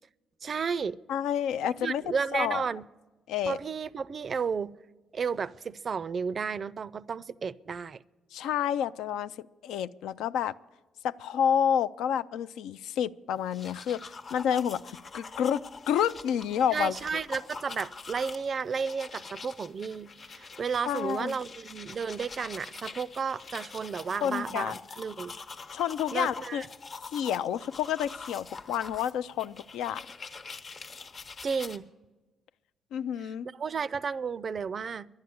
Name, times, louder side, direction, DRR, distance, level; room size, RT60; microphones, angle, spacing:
voice 1, 0.4-1.0 1.8-2.9 3.5-4.8 5.1-8.0 16.7-25.4 26.1-26.7 31.4-31.9 33.5-35.1, right 6 dB, 45° right, 0.3 m, -33 dB
voice 2, 1.1-2.0 2.3-2.6 3.3-3.6 8.3-10.5 11.0-17.0 20.9-21.4 24.2-24.7 25.7-26.6 27.1-30.1 32.9-33.5, left 9 dB, 85° left, 0.3 m, -29 dB
sound 1, 13.4-31.8, left 4 dB, 50° left, 1.0 m, -45 dB
11.5 x 9.6 x 9.3 m
cardioid pair, 90°, 0 cm